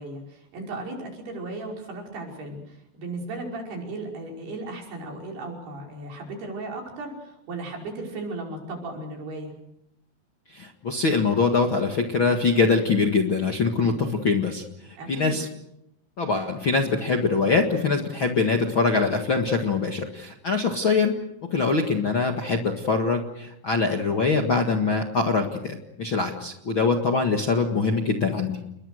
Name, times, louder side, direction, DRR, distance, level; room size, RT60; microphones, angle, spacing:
voice 1, 0.0-9.5 14.9-15.4, right 2 dB, 70° right, 0 dB, 7.4 m, -36 dB
voice 2, 10.5-14.6 15.1-15.5 16.2-28.6, left 4 dB, 45° left, 3 dB, 1.8 m, -23 dB
29.5 x 22.0 x 6.5 m, 0.81 s
omnidirectional pair, 4.7 m